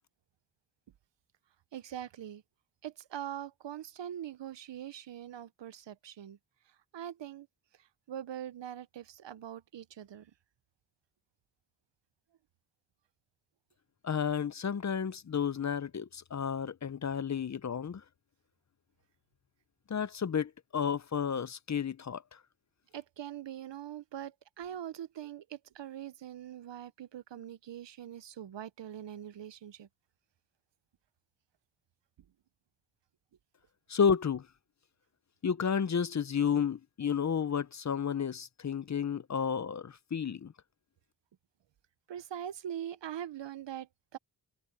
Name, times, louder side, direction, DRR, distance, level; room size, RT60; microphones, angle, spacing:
voice 1, 1.7-2.4 2.8-6.4 6.9-7.5 7.8-10.3 22.9-29.9 42.1-44.2, right 10 dB, 80° right, 0.8 m, -43 dB
voice 2, 14.0-18.0 19.9-22.4 33.9-34.5 35.4-40.5, left 7 dB, 40° left, 0.7 m, -31 dB
wide cardioid pair, 85°, 42 cm